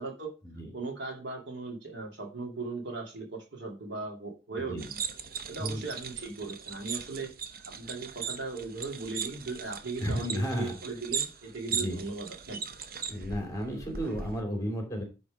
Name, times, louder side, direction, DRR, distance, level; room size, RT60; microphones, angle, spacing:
voice 1, 0.7-5.0 5.5-7.3 7.7-12.6, right 3 dB, 75° right, 1 dB, 2.5 m, -38 dB
sound 1, 4.8-14.4, right 6 dB, 55° right, 0.9 m, -38 dB
voice 2, 10.0-10.7 11.7-12.0 13.1-15.0, equal, 20° left, 3 dB, 2.9 m, -33 dB
9.9 x 4.2 x 4.9 m, 0.30 s
head